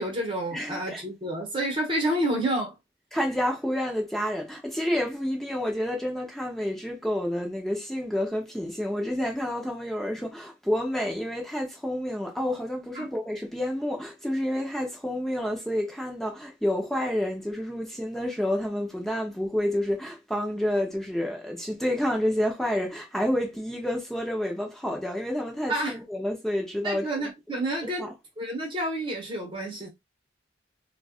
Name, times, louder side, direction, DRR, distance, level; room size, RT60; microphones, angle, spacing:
voice 1, 0.0-2.7 12.9-13.1 25.7-26.0 26.8-28.1 28.4-29.9, right 1 dB, 25° right, 1.3 m, -29 dB
voice 2, 0.5-1.0 3.1-27.1 28.0-28.1, left 1 dB, ahead, 0.8 m, -29 dB
4.5 x 2.4 x 2.4 m
head